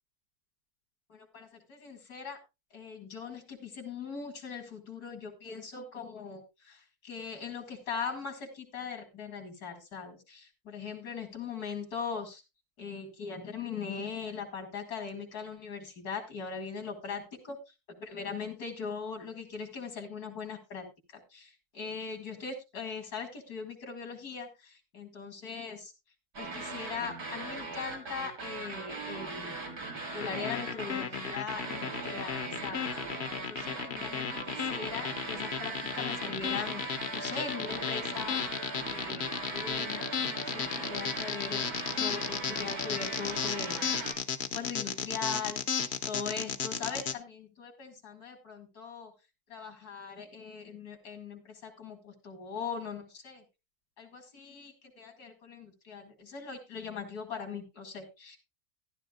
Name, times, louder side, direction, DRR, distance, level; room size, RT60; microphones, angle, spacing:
voice 1, 1.1-2.4 2.7-12.4 12.8-20.9 21.1-25.9 26.4-29.6 30.1-32.9 33.3-38.5 38.9-40.1 40.5-41.6 41.9-43.8 44.5-49.1 49.5-53.4 54.0-58.4, left 5 dB, 85° left, 5 dB, 2.8 m, -40 dB
sound 1, 26.3-44.1, right 3 dB, 80° right, 3.2 m, -39 dB
sound 2, 30.2-47.1, left 7 dB, 50° left, 1.0 m, -34 dB
13.5 x 12.0 x 2.4 m, 0.25 s
omnidirectional pair, 1.6 m